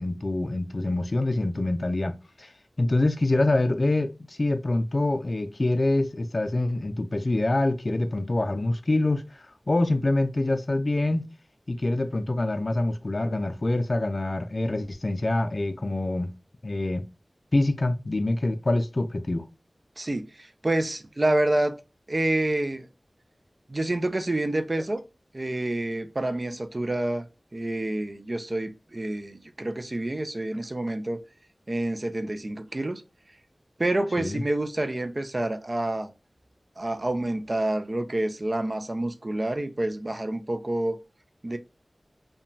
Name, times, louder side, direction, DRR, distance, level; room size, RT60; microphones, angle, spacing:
voice 1, 0.0-2.5 2.8-11.3 11.7-16.3 16.6-17.1 17.5-19.4 34.2-34.4, left 2 dB, 55° left, 0.3 m, -25 dB
voice 2, 20.0-21.8 22.1-22.9 23.7-25.0 25.3-27.3 27.5-31.2 31.7-33.0 33.8-36.1 36.8-41.0 41.4-41.6, right 1 dB, 45° right, 0.4 m, -28 dB
2.8 x 2.2 x 2.6 m
wide cardioid pair, 55°, 0 cm